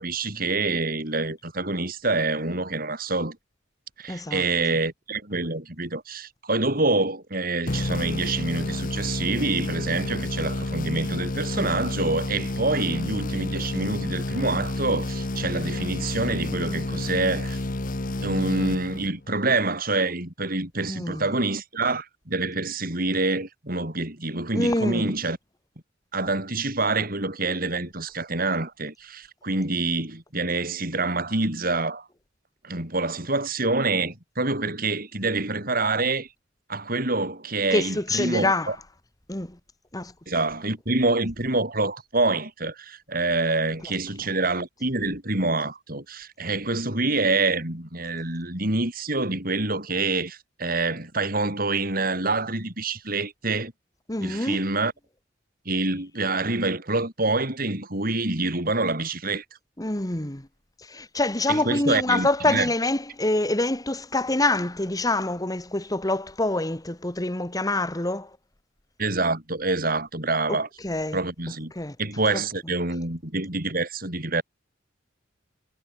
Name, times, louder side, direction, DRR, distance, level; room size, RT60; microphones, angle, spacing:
voice 1, 0.0-3.4 4.0-17.6 18.2-25.4 26.1-32.1 32.6-36.3 36.7-38.8 40.3-53.7 54.2-54.9 55.6-59.4 61.5-62.7 69.0-70.7 71.1-71.7 72.0-74.4, right 3 dB, 50° right, 6.1 m, -26 dB
voice 2, 4.1-4.4 20.9-21.3 24.5-25.1 37.7-38.7 39.3-39.6 39.9-40.1 54.1-54.6 59.8-60.5 60.9-68.3 70.5-70.6 70.8-71.2 71.7-71.9 72.3-72.4, left 2 dB, 20° left, 1.7 m, -26 dB
sound 1, 7.7-19.4, left 2 dB, 45° left, 1.1 m, -30 dB
head